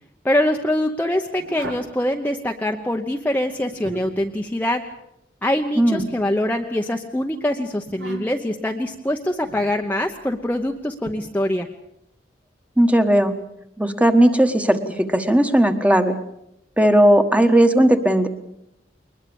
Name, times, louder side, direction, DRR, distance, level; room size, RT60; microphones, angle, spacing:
voice 1, 0.2-4.8 5.4-11.7, left 1 dB, 10° left, 2 dB, 0.8 m, -24 dB
sound 1, 1.4-1.9 3.5-4.3 6.0-6.9 7.9-8.5 9.4-9.8 11.0-11.1, right 2 dB, 85° right, 3.2 m, -37 dB
voice 2, 12.8-13.3 13.8-16.2 16.8-18.3, right 1 dB, 10° right, 7 dB, 1.3 m, -16 dB
22.0 x 20.5 x 7.0 m, 0.80 s
head